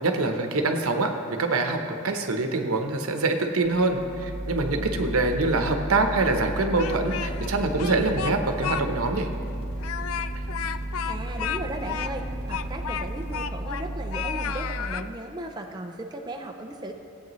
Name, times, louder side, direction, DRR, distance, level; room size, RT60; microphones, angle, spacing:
voice 1, 0.0-9.3, right 3 dB, 85° right, 5 dB, 0.9 m, -25 dB
sound 1, 3.6-14.5, right 1 dB, 30° left, 1.3 m, -33 dB
Speech, 6.5-7.5 7.8-8.8 9.2-9.3 9.8-13.9 14.1-15.1, left 9 dB, 80° left, 0.4 m, -32 dB
voice 2, 11.1-16.9, right 1 dB, 20° right, 3 dB, 0.5 m, -36 dB
16.5 x 8.4 x 3.1 m, 2.5 s
head